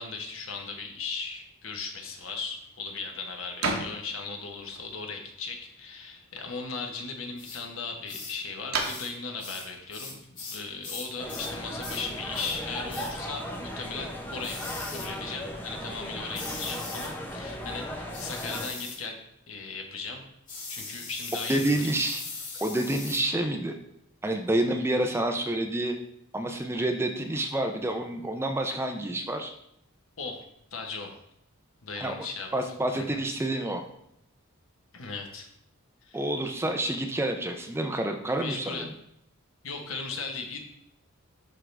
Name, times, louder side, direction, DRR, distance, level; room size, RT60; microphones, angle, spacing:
voice 1, 0.0-14.6 14.9-19.2 19.5-20.2 20.7-21.9 22.5-22.6 30.2-30.4 30.7-31.1 31.8-32.5 32.9-33.2 34.9-35.5 36.0-36.2 38.4-38.9 39.6-40.6, left 4 dB, 70° left, 2 dB, 1.2 m, -37 dB
sound 1, 2.0-11.1, right 3 dB, 85° right, 1.1 m, -39 dB
sound 2, 7.4-7.6 8.1-8.4 8.8-9.1 9.4-11.6 11.8-12.1 12.3-12.6 12.9-13.2 14.4-15.1 16.3-17.1 18.1-19.0 20.5-23.3, left 4 dB, 40° left, 2.2 m, -40 dB
sound 3, 11.2-18.7, equal, 10° left, 0.8 m, -37 dB
voice 2, 21.5-22.2 22.6-23.7 24.2-26.0 26.3-29.5 32.0-32.1 32.5-33.8 36.1-38.9, right 1 dB, 10° right, 4 dB, 0.5 m, -28 dB
11.0 x 3.8 x 3.4 m, 0.75 s
head